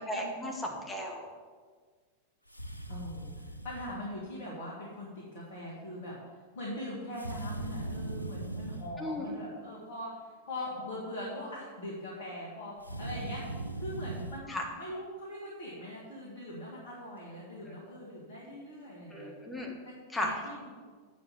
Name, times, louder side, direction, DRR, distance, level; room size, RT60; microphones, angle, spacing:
voice 1, 0.1-1.3 9.0-9.3 14.5-14.6 17.7-17.8 19.1-19.7 20.1-20.3, left 1 dB, 10° left, -1 dB, 1.6 m, -35 dB
sound 1, 2.5-4.0 7.2-9.0 12.8-14.4, right 2 dB, 90° right, 0.5 m, -39 dB
voice 2, 2.9-6.1 6.5-19.3 19.8-20.9, left 1 dB, 55° left, -6 dB, 2.3 m, -42 dB
8.1 x 5.3 x 7.2 m, 1.5 s
figure-of-eight pair, 90°, 0 cm